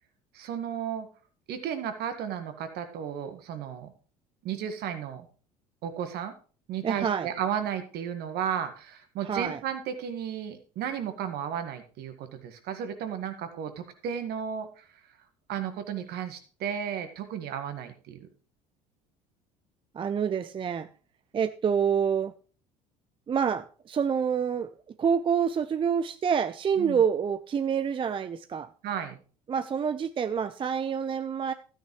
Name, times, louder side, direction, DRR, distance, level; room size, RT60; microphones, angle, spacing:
voice 1, 0.3-1.1 1.5-3.9 4.4-5.3 5.8-6.3 6.7-14.9 15.5-18.3 26.8-27.0 28.8-29.2, right 8 dB, 55° right, 8 dB, 1.7 m, -34 dB
voice 2, 6.8-7.3 9.2-9.6 19.9-20.9 21.3-22.3 23.3-24.7 25.0-28.7 29.5-31.5, right 7 dB, 25° right, 13 dB, 0.5 m, -27 dB
13.0 x 9.1 x 3.2 m, 0.38 s
hypercardioid pair, 65°, 20 cm